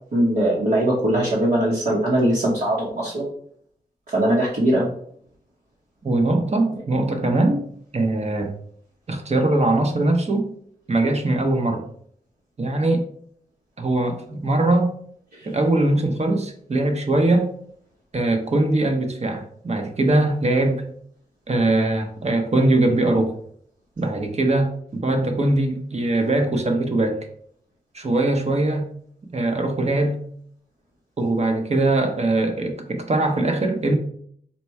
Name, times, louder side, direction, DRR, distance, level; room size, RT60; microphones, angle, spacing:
voice 1, 0.1-3.3 4.1-4.9 6.7-6.8 15.3-15.5, right 1 dB, 75° right, -7 dB, 1.1 m, -21 dB
voice 2, 6.0-7.6 7.9-8.5 9.1-10.5 10.9-11.9 12.6-13.0 13.8-14.9 15.5-17.5 18.1-20.8 21.5-23.4 24.0-27.3 27.9-28.9 29.3-30.2 31.2-33.9, right 2 dB, 45° right, 5 dB, 0.8 m, -21 dB
4.2 x 2.2 x 4.5 m, 0.63 s
wide cardioid pair, 105°, 16 cm